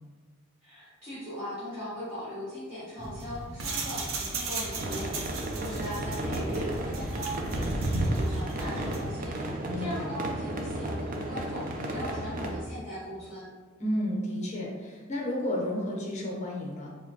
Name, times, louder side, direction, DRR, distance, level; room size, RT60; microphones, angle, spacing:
voice 1, 0.6-9.3 9.8-13.5, equal, 10° right, -12 dB, 1.5 m, -39 dB
sound 1, 3.0-9.2, right 2 dB, 85° right, 0.6 m, -33 dB
sound 2, 4.8-12.6, right 1 dB, 45° right, 0.5 m, -34 dB
voice 2, 9.7-10.1 13.8-16.9, left 1 dB, 35° left, -3 dB, 0.8 m, -32 dB
4.8 x 2.2 x 2.9 m, 1.4 s
head